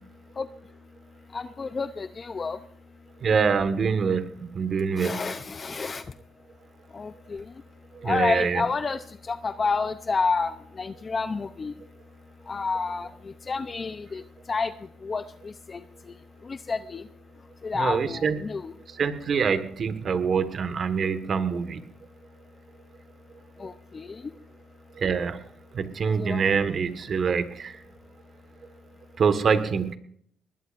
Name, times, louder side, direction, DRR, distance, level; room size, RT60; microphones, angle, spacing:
voice 1, 1.3-2.6 5.0-6.0 6.9-7.4 8.0-11.7 12.5-14.7 15.0-15.8 16.5-17.0 17.6-18.7 23.6-24.2 26.2-26.5, left 4 dB, 35° left, 11 dB, 0.6 m, -30 dB
voice 2, 3.2-4.2 4.5-5.2 8.0-8.6 17.7-18.4 19.0-21.8 25.0-25.4 25.7-27.7 29.2-29.9, right 6 dB, 50° right, 9 dB, 1.6 m, -25 dB
20.5 x 20.5 x 2.6 m, 0.65 s
cardioid pair, 90°, 0 cm